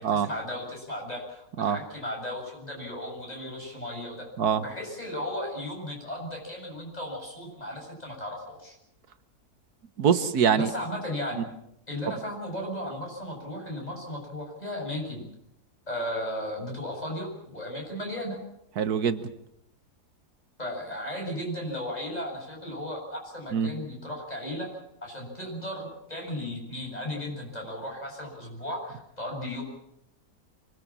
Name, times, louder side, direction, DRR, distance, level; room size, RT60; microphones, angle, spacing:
voice 1, 0.0-4.3 4.6-8.8 10.6-11.5 11.9-15.3 15.9-18.4 20.6-24.7 25.0-29.6, left 1 dB, 25° left, 0 dB, 7.9 m, -35 dB
voice 2, 10.0-10.7 18.8-19.2 23.5-23.7, right 7 dB, 75° right, 11 dB, 1.7 m, -23 dB
25.0 x 20.5 x 7.4 m, 0.78 s
omnidirectional pair, 1.7 m